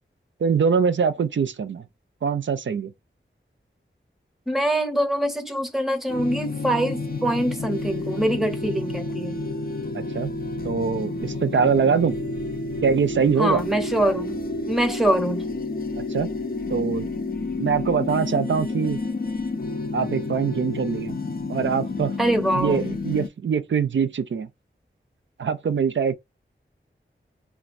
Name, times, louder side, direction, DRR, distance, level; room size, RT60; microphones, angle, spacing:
voice 1, 0.4-1.8 2.2-2.9 9.9-10.3 10.6-12.1 12.8-13.6 16.0-16.3 16.7-17.1 17.6-19.0 19.9-21.2 21.5-22.2 22.5-24.5 25.4-26.2, right 6 dB, 65° right, 0.4 m, -23 dB
voice 2, 4.5-9.5 13.4-15.5 22.2-23.0, right 1 dB, ahead, 0.7 m, -24 dB
sound 1, 6.1-23.3, left 3 dB, 45° left, 0.5 m, -30 dB
3.2 x 2.3 x 2.5 m
wide cardioid pair, 70°, 21 cm